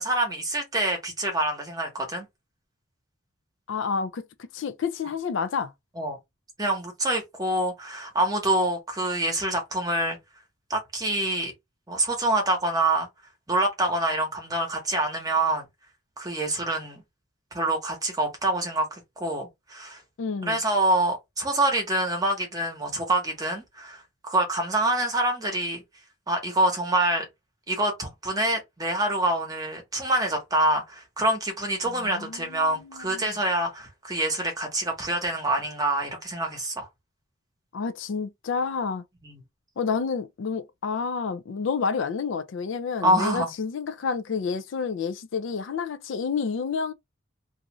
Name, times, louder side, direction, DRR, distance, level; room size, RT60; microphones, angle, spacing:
voice 1, 0.0-2.3 6.0-6.2 6.6-10.2 10.7-11.5 11.9-13.1 13.5-15.6 16.2-17.0 17.5-20.0 20.4-25.8 26.3-27.2 27.7-36.9 39.2-39.4 43.0-43.5, right 1 dB, 20° right, 0.9 m, -26 dB
voice 2, 3.7-4.2 4.5-5.7 20.2-20.6 31.8-33.3 37.7-39.0 39.8-46.9, left 5 dB, 70° left, 0.4 m, -29 dB
2.6 x 2.4 x 3.0 m
head